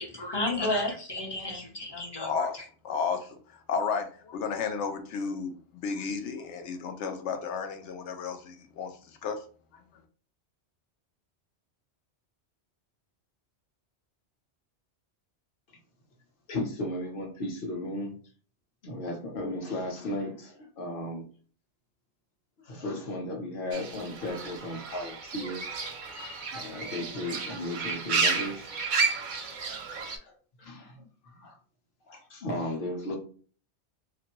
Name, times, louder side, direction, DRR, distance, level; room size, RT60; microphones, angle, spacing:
voice 1, 0.0-2.6, left 2 dB, 30° left, 2 dB, 0.5 m, -32 dB
voice 2, 2.2-2.6 2.8-3.4 3.7-8.9 9.2-9.4, left 5 dB, 85° left, 6 dB, 0.9 m, -32 dB
voice 3, 16.5-18.1 18.8-21.3 22.6-25.6 26.5-28.7 30.2-30.3 30.6-31.5 32.1-33.2, left 1 dB, 55° left, 2 dB, 0.9 m, -35 dB
Fowl / Bird, 23.7-30.2, right 4 dB, 55° right, 0.5 m, -32 dB
2.6 x 2.5 x 2.9 m, 0.41 s
omnidirectional pair, 1.2 m